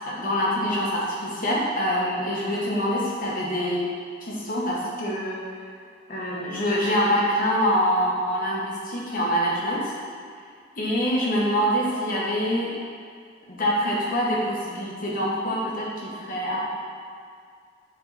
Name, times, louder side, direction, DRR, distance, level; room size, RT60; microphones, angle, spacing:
voice 1, 0.1-3.8 4.2-5.4 6.1-9.9 10.8-12.7 13.5-16.7, equal, 45° left, -5 dB, 1.3 m, -25 dB
7.4 x 3.8 x 4.1 m, 2.2 s
head